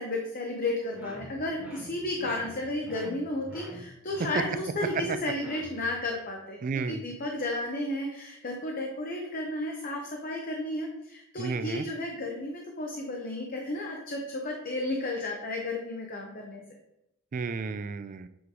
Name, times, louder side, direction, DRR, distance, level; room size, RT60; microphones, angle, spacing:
voice 1, 0.0-16.6, left 2 dB, 40° left, 0 dB, 0.8 m, -33 dB
sound 1, 0.9-6.0, right 1 dB, 10° right, 1.5 m, -46 dB
voice 2, 6.6-7.0 11.4-11.9 17.3-18.3, right 4 dB, 40° right, 12 dB, 0.3 m, -32 dB
8.1 x 3.2 x 4.7 m, 0.85 s
head